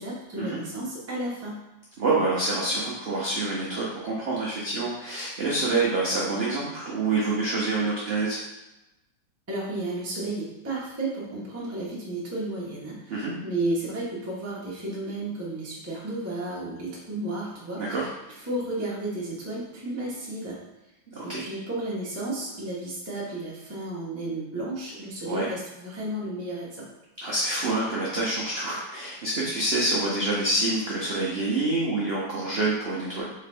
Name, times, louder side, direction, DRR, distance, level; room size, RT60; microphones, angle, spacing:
voice 1, 0.0-1.6 9.5-17.9 18.5-20.6 21.2-26.9, right 2 dB, 15° right, -6 dB, 0.5 m, -33 dB
voice 2, 2.0-8.4 13.1-13.3 17.8-18.1 21.1-21.4 25.3-25.5 27.2-33.2, right 2 dB, 70° right, -5 dB, 0.5 m, -27 dB
3.8 x 3.3 x 3.4 m, 0.96 s
omnidirectional pair, 2.0 m